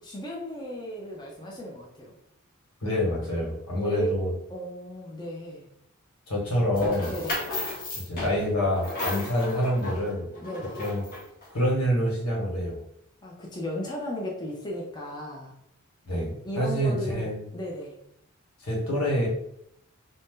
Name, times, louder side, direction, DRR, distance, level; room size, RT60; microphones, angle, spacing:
voice 1, 0.0-2.1 3.7-4.2 4.5-5.7 7.0-7.5 10.4-10.9 13.2-15.5 16.4-18.0, equal, 20° left, -2 dB, 0.5 m, -35 dB
voice 2, 2.8-4.3 6.3-7.2 7.9-10.3 10.8-11.0 11.5-12.8 16.1-17.4 18.6-19.3, equal, 90° left, -3 dB, 1.3 m, -26 dB
sound 1, 6.7-11.4, left 1 dB, 40° left, 0.9 m, -34 dB
2.6 x 2.0 x 3.6 m, 0.74 s
head